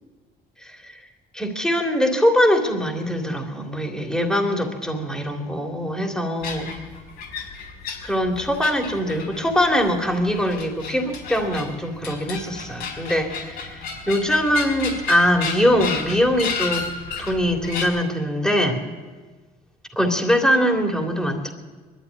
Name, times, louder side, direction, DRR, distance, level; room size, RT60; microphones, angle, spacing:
voice 1, 0.6-1.0 1.3-6.8 8.0-16.8 17.2-18.8 19.9-21.5, equal, 5° left, 2 dB, 3.1 m, -22 dB
sound 1, 6.4-17.8, left 5 dB, 80° left, 4.9 m, -33 dB
21.5 x 13.0 x 9.7 m, 1.4 s
cardioid pair, 110°, 17 cm